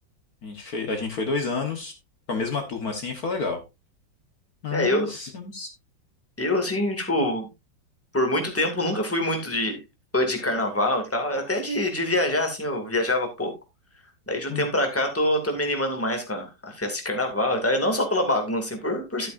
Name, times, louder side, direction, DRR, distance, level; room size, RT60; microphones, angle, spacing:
voice 1, 0.4-1.9 2.3-3.6 4.6-5.7 14.5-14.7, left 4 dB, 55° left, 4 dB, 1.8 m, -29 dB
voice 2, 4.7-5.1 6.4-7.5 8.1-9.8 10.1-13.5 14.3-19.3, left 1 dB, 5° left, 3 dB, 2.2 m, -25 dB
12.5 x 8.5 x 2.6 m, 0.24 s
omnidirectional pair, 2.0 m